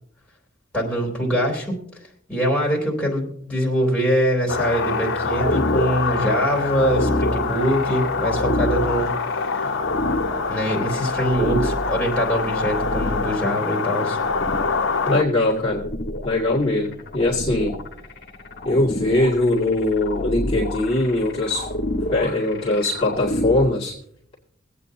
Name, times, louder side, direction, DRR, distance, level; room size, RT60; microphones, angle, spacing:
voice 1, 0.7-1.8 2.3-9.1 9.5-9.6 10.5-14.2, equal, 5° left, -3 dB, 3.2 m, -23 dB
sound 1, 4.5-15.2, left 4 dB, 70° left, 0.7 m, -26 dB
sound 2, 4.5-23.6, left 1 dB, 55° left, 1.5 m, -29 dB
voice 2, 15.1-15.8 16.2-17.8 18.6-21.7 22.1-23.9, left 2 dB, 25° left, -7 dB, 2.2 m, -21 dB
24.0 x 8.5 x 2.7 m, 0.68 s
head